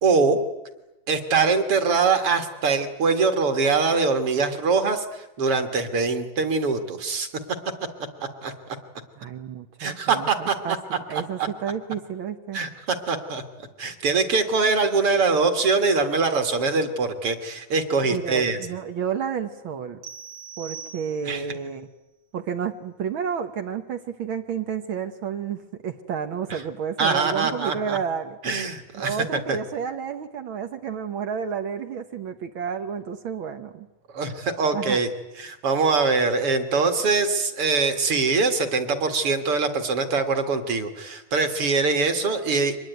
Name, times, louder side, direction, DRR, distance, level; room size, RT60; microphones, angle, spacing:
voice 1, 0.0-0.4 1.1-7.3 8.2-8.5 9.8-10.8 11.1-11.5 12.5-13.4 13.8-18.6 21.3-21.4 27.0-28.0 28.4-29.2 29.5-29.6 34.1-35.1 35.4-42.8, right 4 dB, 50° right, 8 dB, 2.3 m, -23 dB
voice 2, 9.2-12.6 18.1-20.0 20.6-21.9 22.3-28.4 28.9-33.9 34.7-35.0, right 7 dB, 90° right, 7 dB, 1.1 m, -31 dB
sound 1, 20.0-21.6, right 7 dB, 65° right, 3.0 m, -41 dB
24.5 x 20.5 x 9.3 m, 0.99 s
omnidirectional pair, 3.7 m